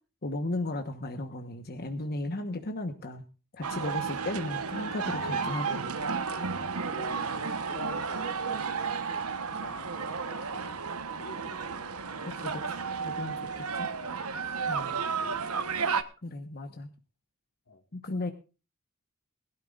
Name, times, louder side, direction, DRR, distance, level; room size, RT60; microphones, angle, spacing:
voice 1, 0.2-3.2 3.5-5.8 12.2-12.3 12.7-12.8 13.0-13.9 14.7-14.9 16.2-16.9 17.9-18.3, left 2 dB, 45° left, 1.2 m, -35 dB
sound 1, 3.6-16.0, right 5 dB, 80° right, 1.2 m, -33 dB
voice 2, 4.1-4.5 6.9-10.8 11.2-12.3 14.0-14.2 14.9-15.9 17.7-17.8, left 3 dB, 75° left, 2.0 m, -48 dB
21.5 x 12.5 x 2.5 m
head